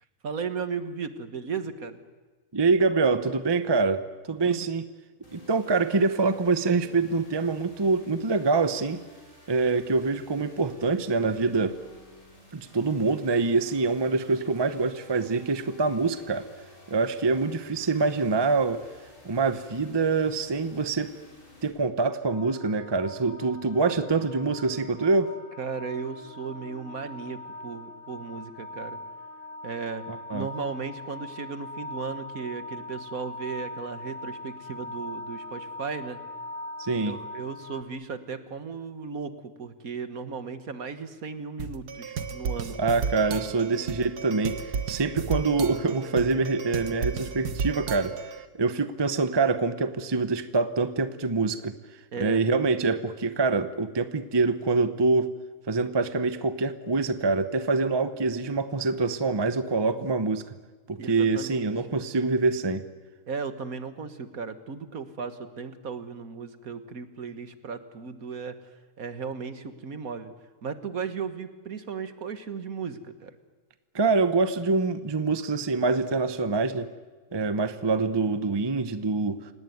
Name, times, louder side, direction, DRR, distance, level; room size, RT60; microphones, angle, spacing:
voice 1, 0.2-2.0 4.5-4.7 25.6-29.0 29.6-36.2 37.0-43.0 52.1-52.5 61.0-61.7 63.3-68.7 69.0-70.3 70.6-73.4, right 5 dB, 65° right, 10 dB, 1.9 m, -36 dB
voice 2, 2.5-4.8 5.3-9.0 9.5-11.8 12.5-16.5 16.9-18.8 19.2-21.1 21.6-25.3 30.1-30.5 36.8-37.2 42.8-48.2 48.5-51.8 52.2-55.3 55.7-60.5 60.9-62.8 73.9-76.9 77.3-79.4, right 3 dB, 20° right, 11 dB, 0.8 m, -25 dB
sound 1, 5.2-21.7, left 1 dB, 65° left, 6.7 m, -52 dB
sound 2, 22.2-37.8, left 2 dB, 35° left, 1.8 m, -41 dB
sound 3, 41.6-48.4, right 6 dB, 80° right, 1.8 m, -33 dB
28.0 x 18.5 x 9.4 m, 1.3 s
omnidirectional pair, 1.6 m